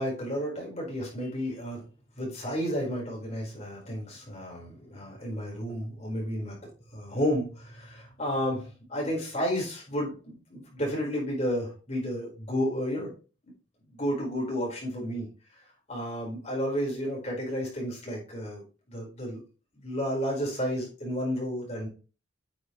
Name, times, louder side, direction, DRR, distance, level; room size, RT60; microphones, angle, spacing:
voice 1, 0.0-1.8 2.2-6.6 6.9-13.1 13.9-15.3 15.9-18.6 18.9-19.4 19.8-21.9, equal, 35° left, -2 dB, 4.6 m, -32 dB
9.5 x 6.9 x 3.1 m, 0.34 s
head